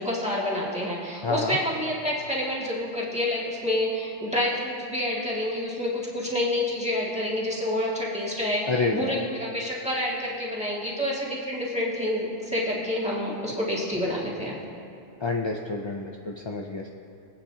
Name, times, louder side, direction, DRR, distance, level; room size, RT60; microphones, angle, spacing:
voice 1, 0.0-14.6, left 1 dB, 5° right, -6 dB, 2.1 m, -28 dB
voice 2, 1.2-1.6 8.7-9.1 15.2-16.9, left 3 dB, 35° left, 0 dB, 0.4 m, -28 dB
23.0 x 8.9 x 2.9 m, 2.5 s
omnidirectional pair, 1.3 m